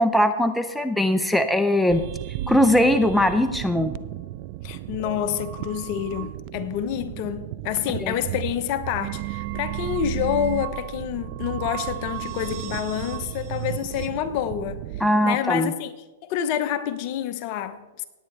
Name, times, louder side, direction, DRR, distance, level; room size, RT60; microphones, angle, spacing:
voice 1, 0.0-2.0 2.5-3.9 8.0-8.1 15.0-15.7, left 1 dB, ahead, 0.6 m, -20 dB
sound 1, 1.9-15.1, right 14 dB, 45° right, 0.4 m, -33 dB
voice 2, 4.6-14.8 15.2-15.9 16.2-18.0, left 10 dB, 45° left, 0.9 m, -28 dB
17.5 x 9.5 x 3.3 m
hypercardioid pair, 130°, 0 cm